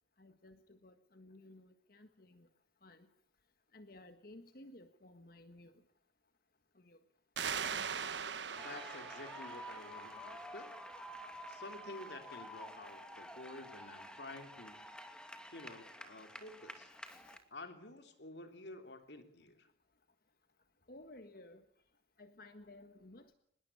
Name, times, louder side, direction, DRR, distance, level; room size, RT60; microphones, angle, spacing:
voice 1, 0.2-1.6 1.9-2.5 2.8-3.1 3.7-5.7 6.8-7.0 17.0-17.4 20.9-21.6 22.2-23.3, left 1 dB, 55° left, 8 dB, 1.6 m, -56 dB
sound 1, 7.4-10.7, right 7 dB, 80° right, 1.3 m, -41 dB
voice 2, 8.5-10.7 11.5-14.9 15.5-16.9 17.5-19.7, left 2 dB, 70° left, 7 dB, 3.2 m, -51 dB
sound 2, 8.6-17.4, equal, 5° left, 2.4 m, -50 dB
25.0 x 21.0 x 8.6 m, 0.67 s
head